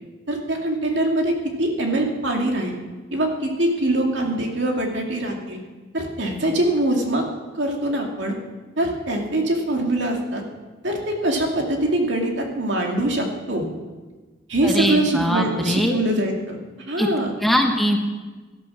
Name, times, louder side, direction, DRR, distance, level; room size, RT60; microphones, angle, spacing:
voice 1, 0.3-2.8 3.1-5.6 5.9-7.2 7.5-8.4 8.8-10.4 10.8-13.7 14.5-16.6 16.9-17.3, right 1 dB, 65° right, 1 dB, 2.6 m, -23 dB
voice 2, 14.6-16.0 17.0-17.1 17.4-18.0, equal, ahead, 1 dB, 1.4 m, -21 dB
17.5 x 11.0 x 6.3 m, 1.3 s
head